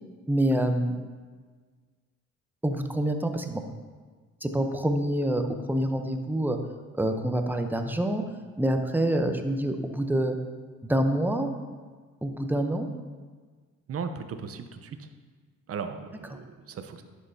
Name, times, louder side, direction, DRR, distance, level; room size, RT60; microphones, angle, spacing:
voice 1, 0.3-1.0 2.6-3.6 4.4-5.4 5.7-6.6 7.0-8.2 8.6-10.4 10.8-11.6 12.2-12.9, right 1 dB, 5° right, 5 dB, 0.7 m, -26 dB
voice 2, 13.9-15.1 15.7-17.0, right 5 dB, 50° right, 8 dB, 0.7 m, -37 dB
11.0 x 6.4 x 2.7 m, 1.5 s
cardioid pair, 90°, 30 cm